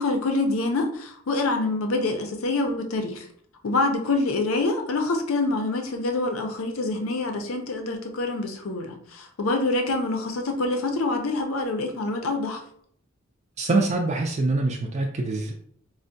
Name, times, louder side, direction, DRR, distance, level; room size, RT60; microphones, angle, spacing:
voice 1, 0.0-3.2 3.6-12.6, left 2 dB, 80° left, 5 dB, 0.6 m, -26 dB
voice 2, 13.6-15.6, right 3 dB, 35° right, 0 dB, 0.3 m, -24 dB
4.3 x 2.1 x 2.6 m, 0.64 s
head